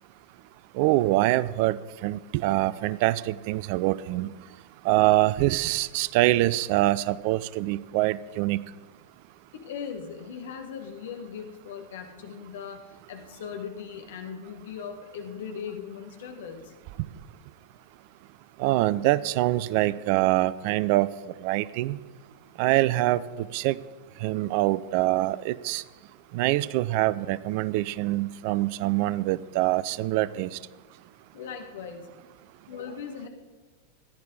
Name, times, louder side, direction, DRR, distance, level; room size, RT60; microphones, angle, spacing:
voice 1, 0.7-4.3 4.8-8.6 18.6-21.1 21.4-22.0 22.6-23.8 24.2-25.8 26.3-30.6, right 17 dB, 45° right, 18 dB, 0.3 m, -24 dB
voice 2, 9.5-16.7 31.3-32.1 32.7-33.3, left 7 dB, 60° left, 5 dB, 1.4 m, -39 dB
14.5 x 10.0 x 3.8 m, 1.3 s
figure-of-eight pair, 90°, 0 cm